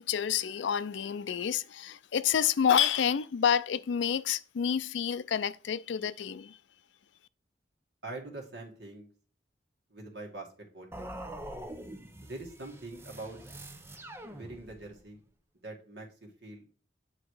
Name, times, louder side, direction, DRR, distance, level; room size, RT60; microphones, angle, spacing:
voice 1, 0.0-6.6, left 8 dB, 85° left, 0.4 m, -29 dB
voice 2, 8.0-9.1 9.9-11.1 12.3-13.4 14.3-15.2 15.6-16.6, right 2 dB, 65° right, 2.1 m, -44 dB
sound 1, 10.9-15.0, right 1 dB, 15° right, 0.7 m, -44 dB
9.1 x 3.9 x 4.8 m
head